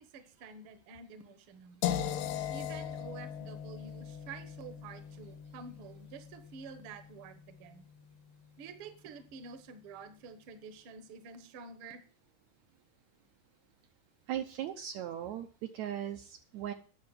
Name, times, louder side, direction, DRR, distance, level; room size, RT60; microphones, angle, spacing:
voice 1, 0.0-1.8 2.5-7.8 8.6-12.0, right 5 dB, 55° right, 10 dB, 1.6 m, -49 dB
sound 1, 1.8-7.7, left 10 dB, 90° left, 2.4 m, -39 dB
voice 2, 14.3-16.7, right 10 dB, 75° right, 7 dB, 1.9 m, -38 dB
9.6 x 6.8 x 7.9 m, 0.40 s
omnidirectional pair, 3.7 m